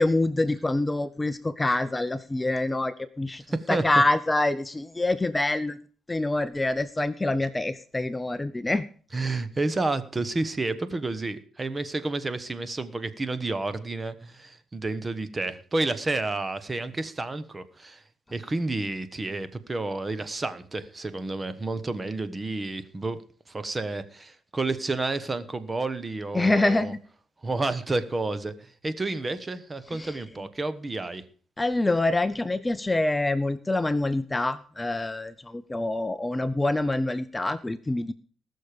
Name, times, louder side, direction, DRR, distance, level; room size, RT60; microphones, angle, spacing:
voice 1, 0.0-3.4 3.7-5.8 6.1-8.9 26.3-27.0 29.9-30.1 31.6-38.1, left 2 dB, 15° left, 13 dB, 0.6 m, -26 dB
voice 2, 3.5-3.8 9.1-18.0 18.3-23.2 23.5-26.9 27.4-31.2, right 2 dB, 25° right, 13 dB, 1.2 m, -30 dB
19.0 x 6.6 x 5.1 m, 0.43 s
cardioid pair, 90°, 0 cm